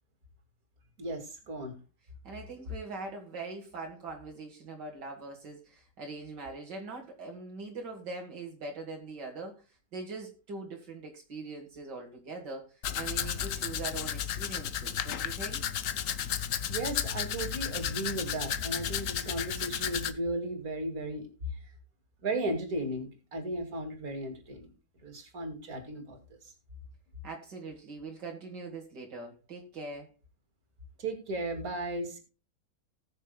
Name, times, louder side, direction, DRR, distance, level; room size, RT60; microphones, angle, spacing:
voice 1, 1.0-1.7 16.7-21.3 22.2-24.7 25.0-26.2 31.0-32.2, right 2 dB, 55° right, 2.7 m, -35 dB
voice 2, 2.2-9.6 9.9-15.6 27.2-30.1, right 3 dB, 80° right, 2.4 m, -42 dB
Domestic sounds home sounds, 12.8-20.1, left 9 dB, 60° left, 0.9 m, -33 dB
19.5 x 6.6 x 2.2 m
omnidirectional pair, 1.8 m